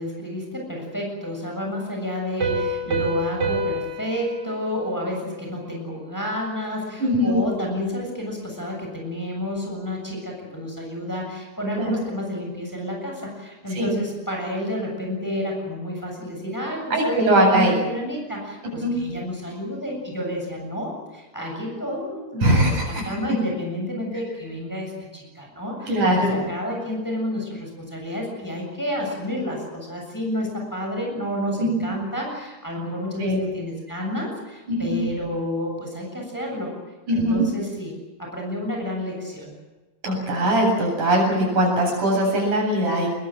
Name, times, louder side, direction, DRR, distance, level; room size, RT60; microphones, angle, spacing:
voice 1, 0.0-36.7 37.1-37.9 38.2-39.5, left 1 dB, 5° left, 0 dB, 7.0 m, -30 dB
Piano, 2.4-5.8, right 1 dB, 50° right, 5.0 m, -28 dB
voice 2, 7.0-7.4 11.8-11.9 13.8-13.9 16.9-17.7 18.8-18.9 21.6-21.7 22.4-23.0 25.9-26.4 31.6-31.7 33.2-33.4 34.7-35.0 37.1-37.4 40.0-43.2, right 1 dB, 90° right, 0 dB, 9.7 m, -20 dB
24.5 x 21.0 x 7.7 m, 1.1 s
omnidirectional pair, 3.5 m